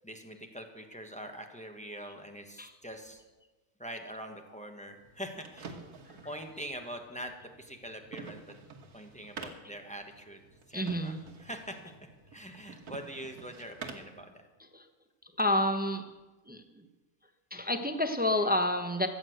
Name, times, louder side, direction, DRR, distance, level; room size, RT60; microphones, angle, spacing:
voice 1, 0.0-3.2 3.8-5.8 6.2-8.6 8.9-10.4 10.7-11.9 12.3-14.4 15.5-15.6 18.3-18.5, equal, 5° left, 4 dB, 1.0 m, -44 dB
sound 1, 5.0-14.2, right 4 dB, 80° right, 1.7 m, -49 dB
voice 2, 10.7-11.2 14.6-14.9 15.4-16.1 16.5-16.9 17.5-19.1, left 1 dB, 10° right, 7 dB, 0.5 m, -30 dB
14.0 x 8.3 x 7.8 m, 1.2 s
omnidirectional pair, 1.6 m